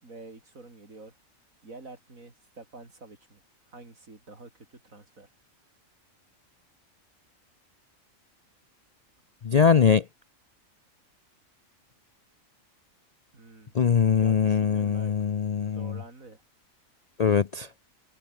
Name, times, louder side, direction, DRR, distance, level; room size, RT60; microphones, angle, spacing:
voice 1, 0.0-1.2 1.6-3.4 3.7-5.3 13.3-13.7 14.1-15.1 15.6-16.4, right 3 dB, 85° right, 4.6 m, -48 dB
voice 2, 9.4-10.0 13.8-16.0 17.2-17.7, left 7 dB, 55° left, 0.4 m, -22 dB
omnidirectional pair, 1.4 m